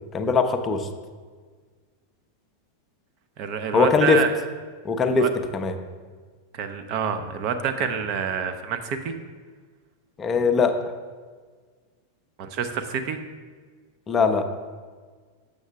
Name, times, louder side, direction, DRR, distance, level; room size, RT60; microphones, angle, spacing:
voice 1, 0.1-0.9 3.7-4.2 4.8-5.3 5.5-5.7 10.2-10.8 14.1-14.5, left 5 dB, 20° left, 7 dB, 0.6 m, -20 dB
voice 2, 3.4-4.3 5.2-5.3 6.5-9.1 12.4-13.2, right 7 dB, 40° right, 7 dB, 0.6 m, -27 dB
7.1 x 6.5 x 3.4 m, 1.5 s
figure-of-eight pair, 90°, 0 cm